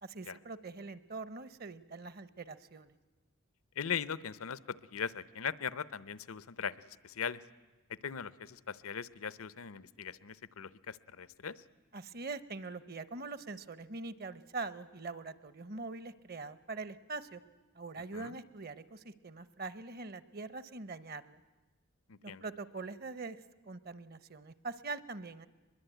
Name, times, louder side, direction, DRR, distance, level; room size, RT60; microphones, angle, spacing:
voice 1, 0.0-2.9 11.9-17.4 17.7-21.4 22.2-23.4 23.7-25.5, right 3 dB, 45° right, 16 dB, 0.8 m, -43 dB
voice 2, 3.8-7.4 8.0-11.6 18.1-18.4 22.1-22.4, left 7 dB, 85° left, 18 dB, 0.7 m, -40 dB
23.0 x 21.5 x 9.1 m, 1.2 s
head